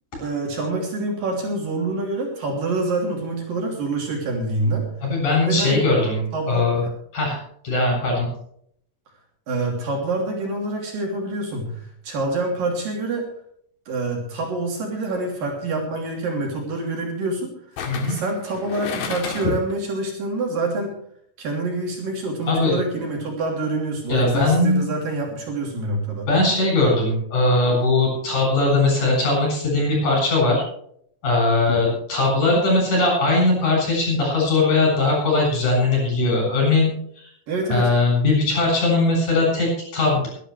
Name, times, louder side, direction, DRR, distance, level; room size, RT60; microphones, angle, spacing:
voice 1, 0.2-4.8 5.5-5.8 6.3-6.9 9.5-13.3 13.9-20.9 21.4-26.3 31.7-31.8 37.5-37.9, right 2 dB, 55° right, 0 dB, 4.5 m, -26 dB
voice 2, 5.0-6.8 7.1-7.4 7.6-8.3 17.9-18.2 22.5-22.8 24.1-24.9 26.3-30.6 31.2-36.9 37.2-37.3 37.7-40.3, left 2 dB, 45° left, -1 dB, 9.3 m, -20 dB
sound 1, 15.1-15.4 17.8-19.7 20.1-20.2, left 6 dB, 90° left, 4.2 m, -32 dB
23.0 x 11.5 x 3.3 m, 0.66 s
omnidirectional pair, 4.9 m